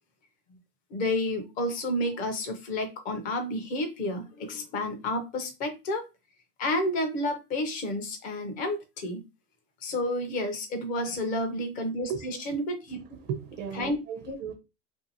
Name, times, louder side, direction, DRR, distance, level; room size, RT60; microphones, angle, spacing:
voice 1, 0.9-6.0 6.6-9.2 9.8-13.0 13.7-14.4, left 1 dB, 20° left, 0.4 m, -30 dB
voice 2, 13.0-14.5, right 7 dB, 35° right, 0.5 m, -36 dB
2.6 x 2.4 x 2.8 m
supercardioid pair, 135°, 45 cm